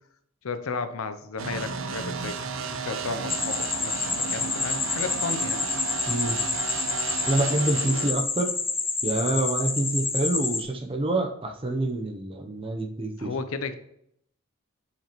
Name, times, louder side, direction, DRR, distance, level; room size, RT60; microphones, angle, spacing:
voice 1, 0.4-2.4 2.7-5.6 13.2-13.8, left 4 dB, 80° left, 10 dB, 0.6 m, -33 dB
sound 1, 1.4-8.1, right 5 dB, 70° right, 0.6 m, -33 dB
sound 2, 3.3-10.6, left 4 dB, 10° left, 0.4 m, -28 dB
voice 2, 6.1-6.4 7.3-8.5 9.0-13.3, right 2 dB, 25° right, 4 dB, 0.7 m, -27 dB
7.3 x 5.1 x 3.0 m, 0.72 s
head